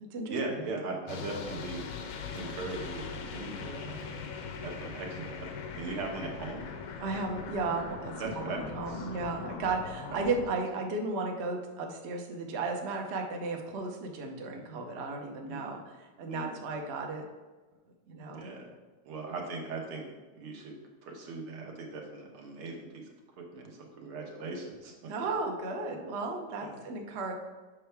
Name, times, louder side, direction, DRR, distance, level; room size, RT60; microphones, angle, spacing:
voice 1, 0.3-1.8 2.3-5.5 5.7-6.6 8.2-9.1 10.1-10.2 15.4-15.8 16.3-16.6 18.3-18.7 19.1-20.1 20.4-20.8 21.0-23.1 23.4-24.9 26.6-26.8, right 3 dB, 90° right, 1 dB, 2.0 m, -39 dB
sound 1, 1.1-10.5, left 6 dB, 75° left, 1.4 m, -41 dB
voice 2, 7.0-17.3 18.1-18.5 25.1-27.3, right 3 dB, 70° right, 2 dB, 0.6 m, -34 dB
7.3 x 5.6 x 3.4 m, 1.3 s
omnidirectional pair, 2.3 m